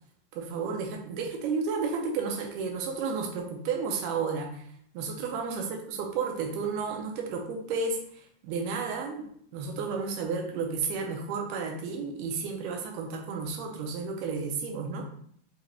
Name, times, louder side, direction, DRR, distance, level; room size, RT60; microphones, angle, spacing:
voice 1, 0.3-4.6 4.9-9.2 9.5-15.0, right 5 dB, 85° right, 2 dB, 2.3 m, -32 dB
5.8 x 2.9 x 2.8 m, 0.64 s
omnidirectional pair, 3.8 m